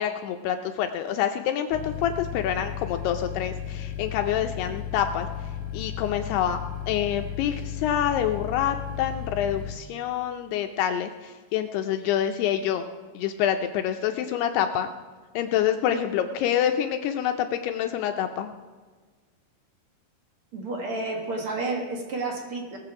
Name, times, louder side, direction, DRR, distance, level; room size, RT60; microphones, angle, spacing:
voice 1, 0.0-5.3 5.7-6.6 6.9-12.9 13.2-14.9 15.4-18.5, left 10 dB, 80° left, 6 dB, 2.4 m, -27 dB
sound 1, 1.7-9.7, left 9 dB, 65° left, 2.0 m, -34 dB
voice 2, 20.5-22.8, right 2 dB, 60° right, 1 dB, 1.4 m, -31 dB
21.0 x 7.5 x 4.8 m, 1.5 s
omnidirectional pair, 5.1 m